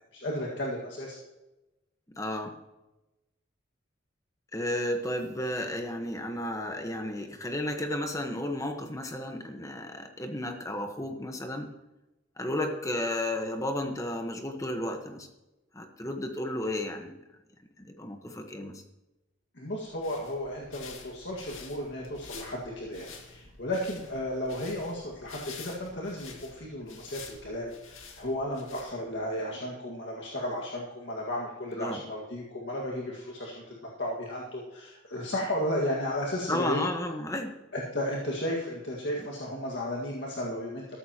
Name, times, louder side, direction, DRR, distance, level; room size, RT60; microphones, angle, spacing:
voice 1, 0.1-1.2 19.6-36.8 37.7-41.0, left 1 dB, 60° left, -2 dB, 1.9 m, -34 dB
voice 2, 2.2-2.5 4.5-11.7 12.4-15.3 15.7-17.2 17.8-18.8 31.7-32.0 36.5-37.5, left 1 dB, 15° left, 5 dB, 1.2 m, -33 dB
sound 1, 19.8-29.3, left 5 dB, 90° left, 2.1 m, -49 dB
14.0 x 13.0 x 3.0 m, 1.0 s
head